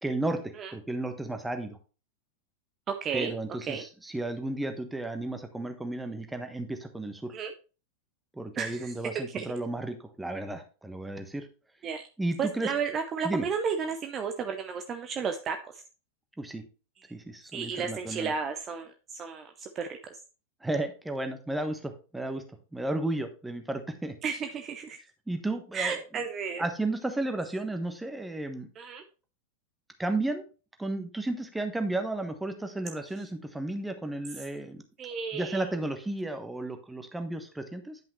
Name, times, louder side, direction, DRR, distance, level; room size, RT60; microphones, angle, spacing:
voice 1, 0.0-1.8 3.1-7.3 8.3-11.5 12.2-12.7 13.2-13.5 16.4-16.6 17.1-18.3 20.6-22.4 22.7-24.2 25.3-26.0 26.6-28.7 30.0-30.4 30.8-34.8 35.3-38.0, right 2 dB, 5° right, 7 dB, 1.2 m, -33 dB
voice 2, 2.9-3.3 3.7-3.8 7.3-7.5 8.6-8.9 9.3-9.5 11.8-12.0 12.4-15.8 17.5-20.0 24.2-25.0 25.7-26.6 28.8-29.0 35.0-35.6, right 6 dB, 25° right, 6 dB, 0.7 m, -33 dB
10.5 x 5.6 x 3.1 m, 0.34 s
figure-of-eight pair, 90°, 0 cm